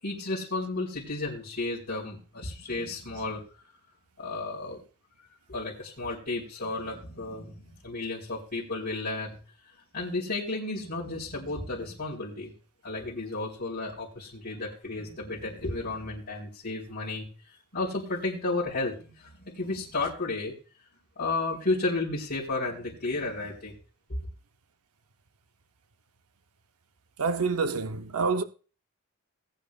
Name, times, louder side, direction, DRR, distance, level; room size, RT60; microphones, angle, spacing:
voice 1, 0.0-3.4 4.2-4.8 5.5-9.4 9.9-12.5 12.8-20.5 21.2-23.7 24.1-24.2, left 2 dB, 45° left, 4.2 m, -33 dB
voice 2, 27.2-28.4, right 4 dB, 80° right, 0.7 m, -27 dB
19.5 x 9.8 x 2.4 m
head